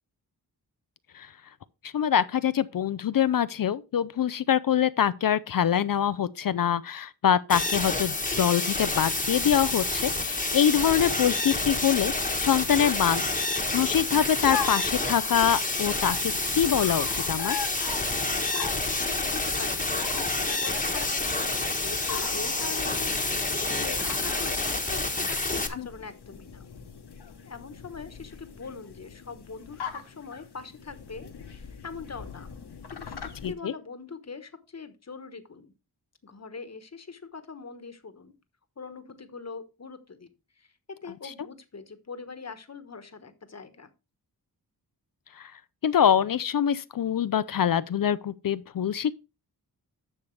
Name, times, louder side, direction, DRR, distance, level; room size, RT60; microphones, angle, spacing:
voice 1, 1.8-13.2 13.7-17.6 33.4-33.7 45.4-45.5 45.8-49.1, left 9 dB, 55° left, 0.5 m, -24 dB
sound 1, 7.5-25.7, left 2 dB, 20° left, 1.2 m, -28 dB
sound 2, 14.5-33.5, left 7 dB, 70° left, 1.2 m, -41 dB
voice 2, 18.3-26.7 27.4-32.5 32.9-35.7 36.2-38.3 38.8-40.3 40.5-40.7 41.0-43.9, left 4 dB, 40° left, 1.2 m, -42 dB
10.5 x 6.6 x 3.2 m
wide cardioid pair, 95°, 40 cm